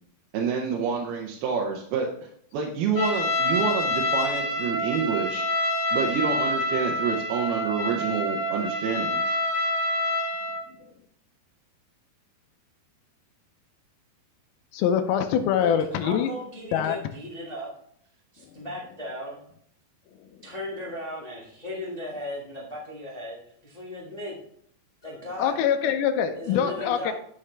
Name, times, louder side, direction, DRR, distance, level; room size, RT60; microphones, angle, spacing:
voice 1, 0.3-2.1 2.5-5.4 5.9-9.4, right 6 dB, 85° right, 1 dB, 2.8 m, -28 dB
Trumpet, 3.0-10.6, left 1 dB, 60° left, 1.9 m, -27 dB
voice 2, 14.7-16.3 16.7-17.0 25.4-27.1, left 8 dB, 80° left, 7 dB, 2.5 m, -24 dB
voice 3, 15.6-17.7 18.3-19.4 20.4-24.3 25.0-25.6 26.3-27.1, left 1 dB, 30° left, -4 dB, 0.6 m, -36 dB
9.9 x 6.4 x 3.3 m, 0.66 s
omnidirectional pair, 4.3 m